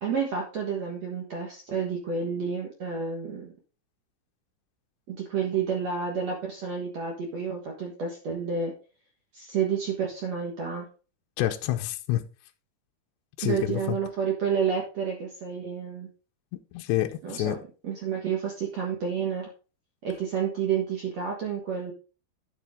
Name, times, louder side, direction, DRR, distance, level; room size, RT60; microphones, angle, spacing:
voice 1, 0.0-3.5 5.1-8.7 9.3-10.9 13.4-16.1 17.2-17.5 17.8-19.5 20.0-21.9, right 6 dB, 65° right, 1.7 m, -30 dB
voice 2, 11.4-12.2 13.4-14.0 16.7-17.6, left 14 dB, 80° left, 2.7 m, -28 dB
10.0 x 7.2 x 3.6 m
omnidirectional pair, 5.3 m